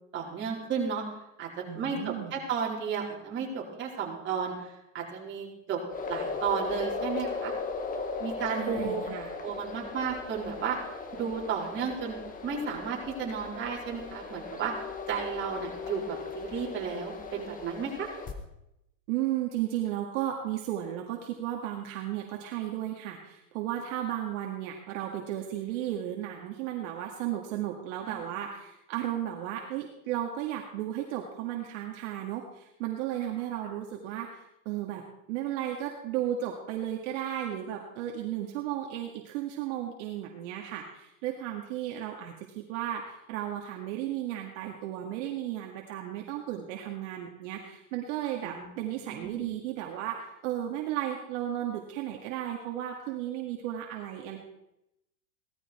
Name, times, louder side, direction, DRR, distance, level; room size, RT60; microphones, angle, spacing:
voice 1, 0.1-1.0 1.4-4.5 4.9-5.8 6.1-7.5 8.2-9.0 9.4-10.8 11.1-12.2 12.4-14.7 15.1-18.1 28.1-28.2 48.4-49.4, right 6 dB, 30° right, -4 dB, 4.5 m, -33 dB
voice 2, 1.7-2.4 8.5-9.3 19.1-54.4, right 12 dB, 60° right, 1 dB, 2.1 m, -34 dB
sound 1, 5.9-18.3, left 4 dB, 20° left, 1.6 m, -37 dB
17.5 x 13.5 x 4.4 m, 0.86 s
supercardioid pair, 145°, 41 cm